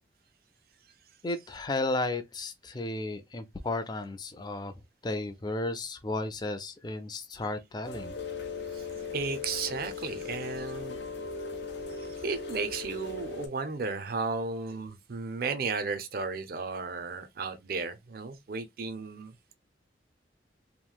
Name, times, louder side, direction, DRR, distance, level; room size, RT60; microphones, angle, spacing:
voice 1, 1.2-4.7 5.0-8.1, left 2 dB, 25° left, 0.4 m, -33 dB
Rain, 7.8-13.5, left 5 dB, 65° left, 0.6 m, -38 dB
voice 2, 9.1-11.0 11.9-19.5, right 4 dB, 50° right, 0.4 m, -34 dB
3.0 x 2.6 x 2.2 m
head